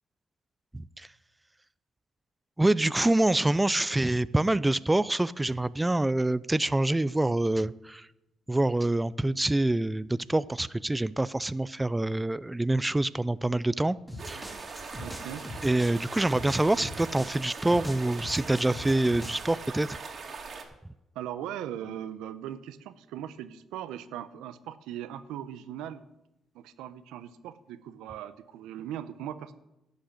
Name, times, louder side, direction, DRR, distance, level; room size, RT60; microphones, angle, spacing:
voice 1, 0.7-1.1 2.6-8.1 8.5-14.0 14.3-14.5 15.6-20.0, right 2 dB, 15° right, 17 dB, 0.4 m, -26 dB
sound 1, 14.1-19.6, left 1 dB, 5° left, 2.6 m, -42 dB
sound 2, 14.2-20.6, right 4 dB, 55° right, 2.3 m, -41 dB
voice 2, 15.0-15.4 21.1-26.0 26.5-29.5, right 10 dB, 90° right, 13 dB, 0.7 m, -39 dB
11.5 x 6.4 x 8.4 m, 0.92 s
supercardioid pair, 65°, 0 cm